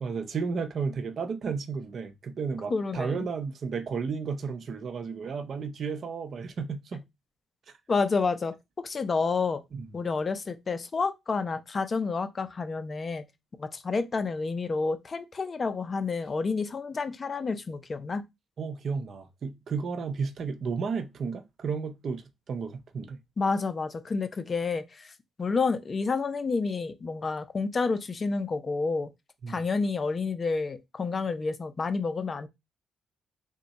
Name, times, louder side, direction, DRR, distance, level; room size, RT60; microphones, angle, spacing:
voice 1, 0.0-7.1 9.7-9.9 18.6-23.2 29.4-29.6, right 5 dB, 55° right, 0.6 m, -33 dB
voice 2, 2.7-3.3 7.9-8.5 8.8-9.6 9.9-13.2 13.6-18.2 23.4-25.1 25.4-29.1 29.5-32.5, left 4 dB, 35° left, 0.5 m, -29 dB
3.5 x 2.2 x 4.0 m
cardioid pair, 90°, 0 cm